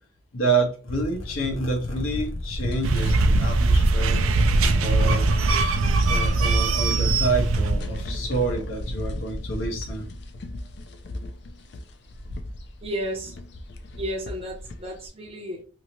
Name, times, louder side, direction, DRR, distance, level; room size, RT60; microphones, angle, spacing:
voice 1, 0.3-4.2 4.8-5.3 6.1-10.1, right 3 dB, 85° left, 1 dB, 1.1 m, -28 dB
sound 1, 0.9-15.1, left 1 dB, 55° left, 0.4 m, -35 dB
sound 2, 2.8-8.1, right 3 dB, 90° right, 0.4 m, -21 dB
voice 2, 12.8-13.3 14.0-15.6, equal, 30° right, 1 dB, 0.7 m, -32 dB
2.9 x 2.7 x 2.9 m, 0.38 s
head